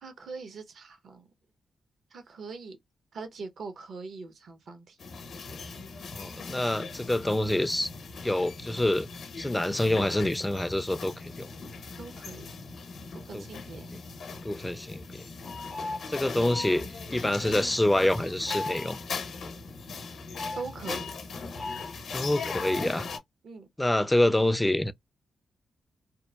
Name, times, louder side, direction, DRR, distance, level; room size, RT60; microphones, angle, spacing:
voice 1, 0.0-1.3 2.1-2.8 3.1-5.0 12.0-12.5 13.1-13.9 20.5-21.1 23.4-23.7, right 4 dB, 65° right, 0.7 m, -41 dB
sound 1, 5.0-23.2, left 4 dB, 70° left, 0.7 m, -39 dB
voice 2, 6.1-7.9 8.2-9.1 9.4-11.5 13.3-13.4 13.9-14.0 14.4-15.3 16.1-19.0 22.1-23.1 23.8-24.9, left 1 dB, 10° left, 0.3 m, -27 dB
2.9 x 2.0 x 2.2 m
supercardioid pair, 45°, 0 cm